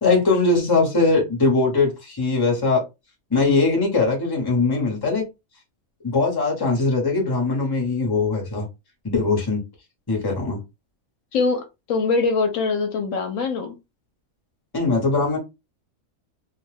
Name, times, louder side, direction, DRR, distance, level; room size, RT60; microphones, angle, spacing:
voice 1, 0.0-2.8 3.3-5.3 6.0-8.7 9.0-9.6 10.1-10.6 14.7-15.4, left 3 dB, 20° left, 1 dB, 0.9 m, -21 dB
voice 2, 11.3-13.8, left 4 dB, 70° left, 5 dB, 0.9 m, -23 dB
2.6 x 2.2 x 3.2 m, 0.24 s
omnidirectional pair, 1.5 m